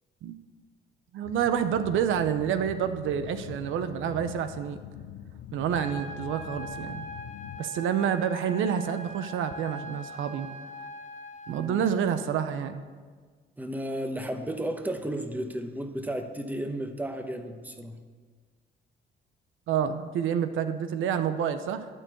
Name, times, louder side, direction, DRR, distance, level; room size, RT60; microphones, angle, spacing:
voice 1, 1.1-4.8 5.5-7.0 7.6-10.5 11.5-12.8 19.7-21.9, right 8 dB, 80° right, 10 dB, 0.6 m, -28 dB
sound 1, 1.2-7.6, left 11 dB, 85° left, 0.4 m, -44 dB
sound 2, 5.7-11.7, left 1 dB, 40° left, 1.4 m, -41 dB
voice 2, 11.5-11.8 13.6-18.0, right 1 dB, 10° right, 6 dB, 1.0 m, -33 dB
12.0 x 4.5 x 8.3 m, 1.5 s
cardioid pair, 90°, 20 cm